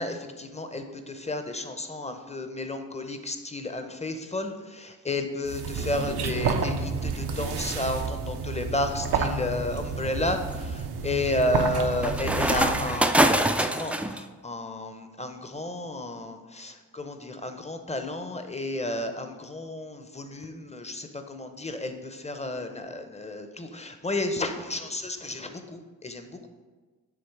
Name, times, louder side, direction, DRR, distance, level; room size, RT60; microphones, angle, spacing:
voice 1, 0.0-26.5, left 2 dB, 15° left, 7 dB, 0.7 m, -32 dB
sound 1, 5.5-13.2, right 5 dB, 80° right, 0.6 m, -30 dB
sound 2, 8.7-9.0 9.6-14.2, right 1 dB, 5° right, 0.3 m, -25 dB
7.2 x 3.1 x 4.6 m, 1.3 s
cardioid pair, 40°, 39 cm